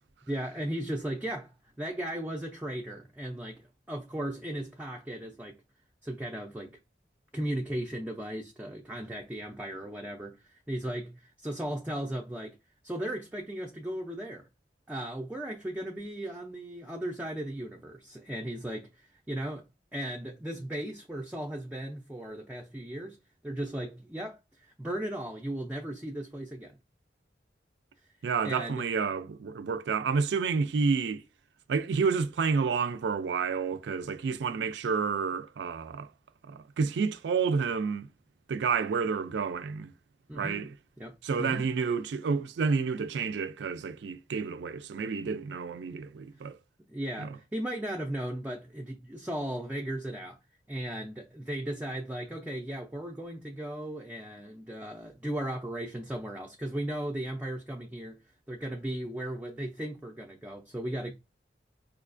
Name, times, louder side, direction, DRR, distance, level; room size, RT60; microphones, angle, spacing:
voice 1, 0.3-5.6 6.0-6.7 7.3-12.5 12.8-14.5 14.9-19.6 19.9-23.2 23.4-26.8 28.4-28.8 40.3-40.6 41.0-41.6 46.9-50.4 50.7-58.2 58.5-61.1, right 1 dB, 10° right, 0.3 m, -36 dB
voice 2, 28.2-31.2 31.7-36.1 36.4-38.1 38.5-39.9 40.3-40.7 41.2-46.6 47.2-47.4, right 5 dB, 85° right, 0.4 m, -30 dB
4.8 x 2.3 x 2.4 m
head